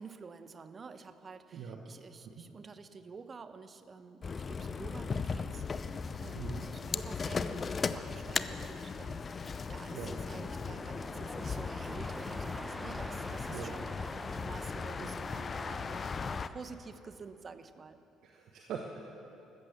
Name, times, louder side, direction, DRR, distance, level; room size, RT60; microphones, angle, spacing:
voice 1, 0.0-18.0, right 5 dB, 35° right, 11 dB, 1.0 m, -49 dB
sound 1, 4.2-16.5, left 5 dB, 35° left, 0.6 m, -37 dB
voice 2, 6.4-6.7 9.9-10.1 13.5-13.7 15.0-15.1 18.2-19.0, right 7 dB, 55° right, 2 dB, 1.2 m, -42 dB
sound 2, 9.0-15.2, equal, ahead, 0.9 m, -46 dB
14.5 x 14.0 x 7.1 m, 2.8 s
figure-of-eight pair, 50°, 0 cm